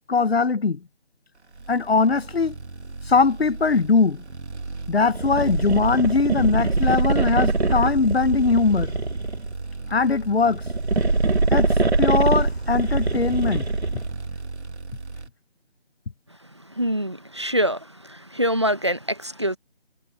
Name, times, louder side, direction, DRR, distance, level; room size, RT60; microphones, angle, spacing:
voice 1, 0.1-0.8 1.7-2.5 3.1-4.2 4.9-8.9 9.9-10.6 11.5-11.7 12.0-13.7, left 4 dB, 65° left, 0.8 m, -21 dB
sound 1, 1.5-15.3, right 3 dB, 90° right, 1.9 m, -35 dB
sound 2, 5.1-9.5 10.5-14.1, right 3 dB, 75° right, 2.8 m, -23 dB
voice 2, 16.8-19.6, equal, 25° right, 1.1 m, -25 dB
figure-of-eight pair, 180°, 33 cm